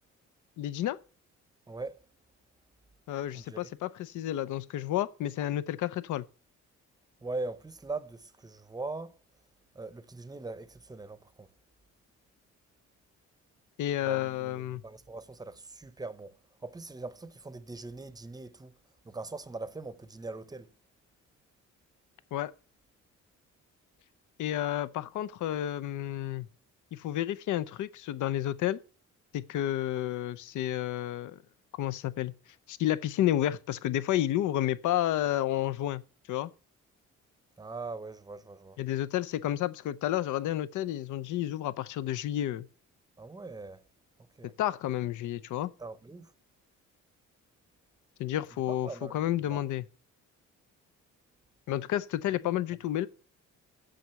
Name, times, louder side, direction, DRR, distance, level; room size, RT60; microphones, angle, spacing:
voice 1, 0.6-1.0 3.1-6.2 13.8-14.8 22.3-22.5 24.4-26.5 26.9-28.8 29.3-31.4 31.8-32.3 32.7-36.0 36.3-36.5 38.8-42.7 44.6-45.7 48.2-49.8 51.7-53.1, left 12 dB, 75° left, 0.7 m, -31 dB
voice 2, 1.7-2.0 3.3-3.7 7.2-9.2 9.7-11.5 14.0-18.8 19.0-20.7 37.6-38.8 43.2-43.8 44.4-44.5 45.8-46.3 48.5-49.6 52.4-52.5, right 3 dB, 15° right, 0.7 m, -41 dB
7.7 x 6.4 x 6.9 m
cardioid pair, 90°, 30 cm